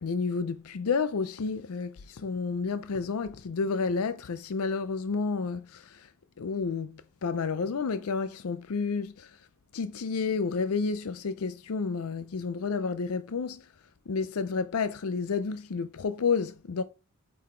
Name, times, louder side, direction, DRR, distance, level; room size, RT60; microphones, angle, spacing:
voice 1, 0.0-6.1 6.4-9.4 9.7-13.7 14.1-16.8, left 5 dB, 75° left, 0.5 m, -30 dB
8.4 x 4.0 x 4.4 m
head